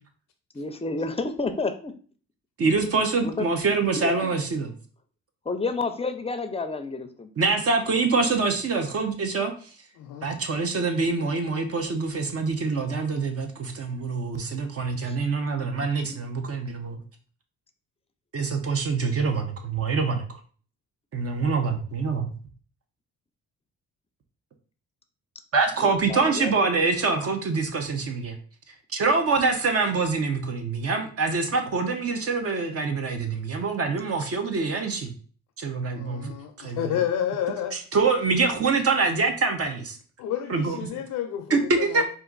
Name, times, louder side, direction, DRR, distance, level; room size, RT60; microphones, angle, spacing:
voice 1, 0.5-1.9 3.2-3.5 4.0-4.3 5.5-7.3 15.0-15.2 15.7-16.2 25.8-26.5, left 3 dB, 20° left, 8 dB, 0.5 m, -30 dB
voice 2, 2.6-4.7 7.4-9.5 10.2-17.0 18.3-20.3 21.1-22.3 25.5-28.4 28.9-35.1 35.6-37.0 37.7-40.0 40.5-41.0 41.5-42.0, right 4 dB, 50° right, 5 dB, 0.9 m, -25 dB
voice 3, 10.0-10.3 35.9-37.8 40.2-42.0, left 10 dB, 85° left, 3 dB, 0.6 m, -30 dB
4.3 x 2.6 x 3.9 m, 0.42 s
cardioid pair, 90°, 30 cm